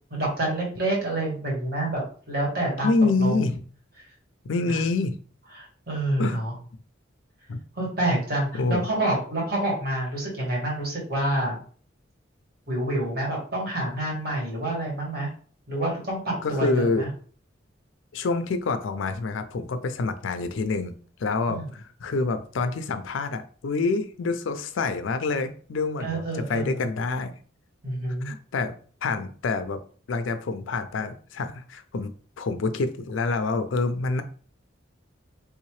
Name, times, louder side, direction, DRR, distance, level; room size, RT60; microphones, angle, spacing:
voice 1, 0.1-2.0 2.3-2.9 3.2-3.4 4.0-4.1 4.7-4.8 5.5-6.5 7.7-11.6 12.7-15.3 15.7-17.1 21.5-21.7 26.0-26.8 27.8-28.3, right 1 dB, 50° right, -3 dB, 1.6 m, -27 dB
voice 2, 2.8-3.6 4.4-5.2 6.2-6.4 7.5-7.6 8.5-8.9 16.4-17.1 18.1-20.9 21.2-27.3 28.2-28.7 29.0-29.8 30.1-32.1 32.4-34.2, left 3 dB, 75° left, 10 dB, 0.4 m, -27 dB
3.5 x 2.8 x 3.1 m, 0.43 s
head